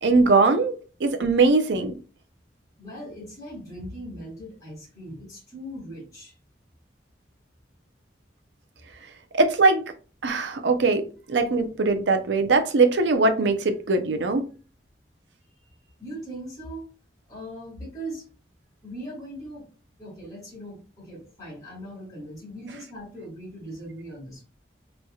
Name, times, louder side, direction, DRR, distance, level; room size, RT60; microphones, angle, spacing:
voice 1, 0.0-0.7 1.0-1.9 9.3-9.8 10.2-14.5, right 3 dB, 85° right, 0.6 m, -21 dB
voice 2, 2.8-6.3 8.8-8.9 15.6-15.7 16.0-16.9 17.3-18.2 18.8-19.7 20.0-24.4, right 1 dB, 20° left, 1.8 m, -39 dB
4.2 x 3.2 x 2.3 m
head